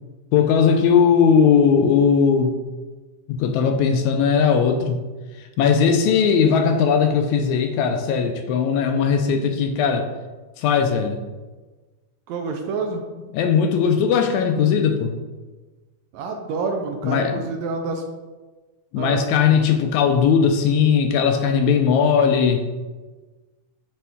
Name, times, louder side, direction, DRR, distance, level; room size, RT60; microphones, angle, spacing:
voice 1, 0.3-2.6 3.3-5.0 5.6-10.1 10.6-11.2 13.3-15.1 17.0-17.4 18.9-22.7, left 6 dB, 80° left, 5 dB, 1.8 m, -18 dB
voice 2, 12.3-13.0 16.1-18.0 19.0-19.2, right 4 dB, 75° right, 4 dB, 1.7 m, -28 dB
8.4 x 3.4 x 3.5 m, 1.2 s
omnidirectional pair, 3.5 m